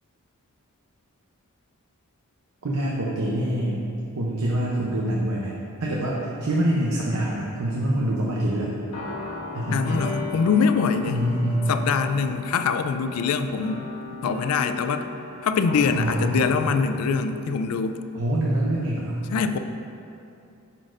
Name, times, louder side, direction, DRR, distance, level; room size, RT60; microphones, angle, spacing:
voice 1, 2.6-3.8 4.2-5.5 5.8-8.8 9.5-9.9 11.1-11.7 15.9-16.5 18.1-19.2, right 1 dB, 70° right, -4 dB, 0.7 m, -25 dB
sound 1, 8.9-17.3, left 2 dB, 90° left, 1.2 m, -36 dB
voice 2, 9.7-11.2 11.7-13.9 14.2-15.0 15.4-18.0 19.3-19.6, left 5 dB, 75° left, 9 dB, 0.3 m, -23 dB
11.0 x 4.1 x 2.5 m, 2.7 s
head